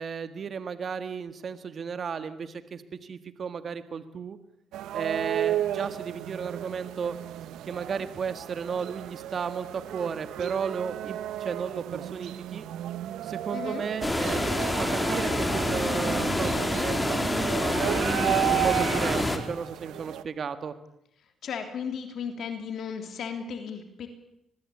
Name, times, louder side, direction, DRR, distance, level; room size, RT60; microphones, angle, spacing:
voice 1, 0.0-4.4 4.9-7.2 7.7-12.7 13.2-14.5 14.8-20.7, right 6 dB, 50° right, 11 dB, 1.7 m, -34 dB
sound 1, 4.7-20.2, right 12 dB, 85° right, 1.1 m, -33 dB
voice 2, 13.5-13.9 21.2-24.1, left 6 dB, 65° left, 6 dB, 3.2 m, -35 dB
sound 2, 14.0-19.4, left 1 dB, 15° left, 3.6 m, -27 dB
24.0 x 21.0 x 8.6 m, 0.78 s
cardioid pair, 90°, 0 cm